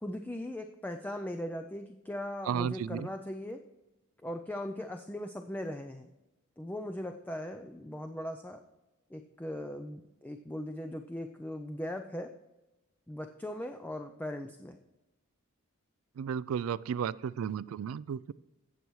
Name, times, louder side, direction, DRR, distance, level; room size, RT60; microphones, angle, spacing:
voice 1, 0.0-3.6 4.2-6.1 6.6-8.6 9.1-12.3 13.1-14.8, left 1 dB, 10° left, 5 dB, 0.4 m, -39 dB
voice 2, 2.5-3.1 16.2-18.3, right 7 dB, 75° right, 19 dB, 0.3 m, -33 dB
16.5 x 6.9 x 3.1 m, 1.0 s
head